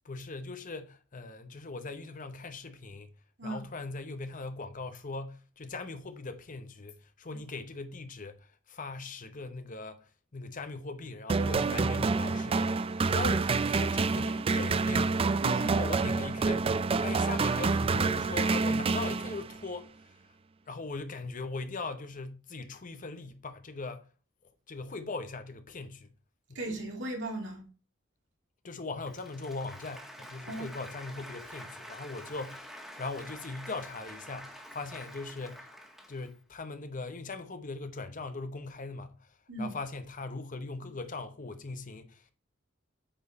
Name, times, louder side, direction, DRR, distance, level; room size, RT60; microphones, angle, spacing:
voice 1, 0.0-3.1 3.4-15.2 15.6-16.7 17.0-20.1 20.7-24.1 24.7-26.1 26.5-26.6 28.6-35.7 36.1-42.3, left 3 dB, 45° left, 0.9 m, -40 dB
sound 1, 11.3-19.7, right 4 dB, 30° right, 0.3 m, -28 dB
voice 2, 15.4-15.8 26.5-27.6 30.5-30.7 39.5-39.7, right 1 dB, 65° right, 2.8 m, -36 dB
Applause, 29.0-36.4, equal, ahead, 1.6 m, -47 dB
8.9 x 4.6 x 4.2 m
head